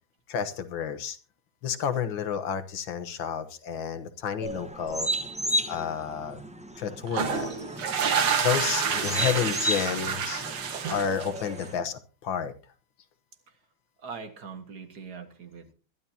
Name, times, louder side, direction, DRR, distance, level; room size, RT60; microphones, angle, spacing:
voice 1, 0.3-1.2 1.6-5.1 5.7-6.4 6.8-7.5 7.9-10.5 10.9-12.5, left 8 dB, 70° left, 10 dB, 1.9 m, -31 dB
sound 1, 4.4-11.8, equal, 5° right, 0.5 m, -34 dB
sound 2, 7.1-11.6, right 6 dB, 85° right, 2.4 m, -28 dB
voice 2, 14.0-15.7, right 5 dB, 50° right, 7 dB, 2.0 m, -42 dB
21.0 x 12.5 x 2.8 m, 0.34 s
omnidirectional pair, 2.3 m